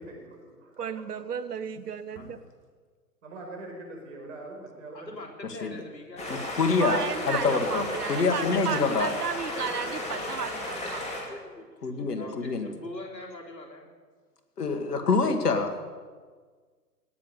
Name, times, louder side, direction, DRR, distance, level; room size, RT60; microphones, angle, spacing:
voice 1, 0.0-1.0 3.2-5.1, right 2 dB, 45° right, 2 dB, 4.9 m, -43 dB
voice 2, 0.8-2.4 6.8-11.0, right 7 dB, 65° right, 14 dB, 1.0 m, -33 dB
voice 3, 4.9-6.5 11.3-13.9, left 2 dB, 80° left, 0 dB, 3.7 m, -43 dB
sound 1, 6.2-11.2, left 1 dB, 15° left, 2.9 m, -34 dB
voice 4, 6.3-7.0 7.3-9.1 11.8-12.7 14.6-15.7, left 4 dB, 65° left, 7 dB, 2.1 m, -26 dB
17.5 x 7.1 x 9.7 m, 1.5 s
figure-of-eight pair, 130°, 50 cm